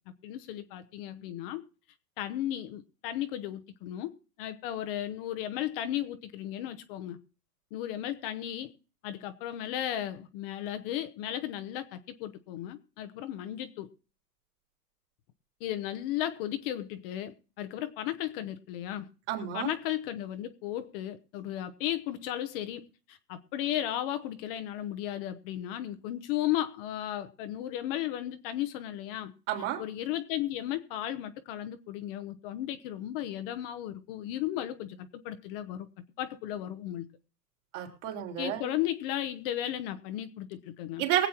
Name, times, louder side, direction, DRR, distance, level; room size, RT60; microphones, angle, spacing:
voice 1, 0.2-1.6 2.2-4.1 4.4-7.2 7.7-8.7 9.0-13.9 15.6-19.1 19.5-29.3 29.8-35.9 36.2-37.1 38.4-41.0, left 12 dB, 35° left, 0.9 m, -35 dB
voice 2, 19.3-19.7 29.5-29.8 37.7-38.6 41.0-41.3, right 11 dB, 45° right, 3.5 m, -30 dB
23.0 x 8.3 x 3.0 m
hypercardioid pair, 140°, 50 cm